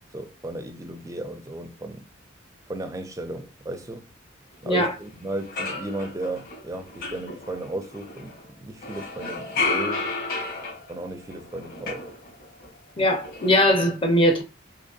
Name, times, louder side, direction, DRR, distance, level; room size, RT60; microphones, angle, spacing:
voice 1, 0.1-2.0 2.7-4.1 4.6-10.1 10.9-12.1, right 1 dB, 15° right, 0.4 m, -35 dB
sound 1, 4.9-5.0 5.3-8.4 8.8-12.7 13.0-13.7, left 3 dB, 45° left, 1.7 m, -32 dB
voice 2, 13.0-14.4, left 1 dB, 25° left, 0.7 m, -20 dB
3.8 x 2.9 x 2.5 m
head